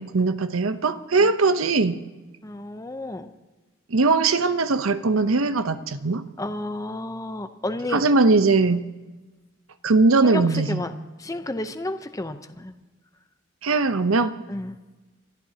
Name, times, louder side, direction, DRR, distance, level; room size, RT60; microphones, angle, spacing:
voice 1, 0.0-2.0 3.9-6.2 7.9-8.9 9.8-10.8 13.6-14.4, right 3 dB, 85° right, 11 dB, 0.8 m, -20 dB
voice 2, 2.4-3.3 6.4-8.0 10.2-10.9 11.2-12.7 14.5-14.8, left 1 dB, 15° left, 8 dB, 0.7 m, -31 dB
29.5 x 14.0 x 2.9 m, 1.2 s
head